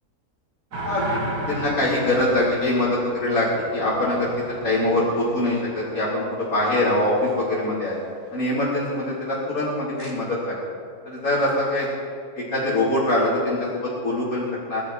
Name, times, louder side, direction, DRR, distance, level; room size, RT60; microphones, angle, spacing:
sound 1, 0.7-6.5 10.0-10.2, right 1 dB, 75° right, 2.5 m, -34 dB
voice 1, 0.8-1.2 1.5-3.5 3.7-4.3 4.6-7.9 8.3-10.5 11.0-11.9 12.3-14.8, left 1 dB, 60° left, -11 dB, 4.5 m, -23 dB
21.5 x 12.5 x 4.5 m, 2.1 s
omnidirectional pair, 1.7 m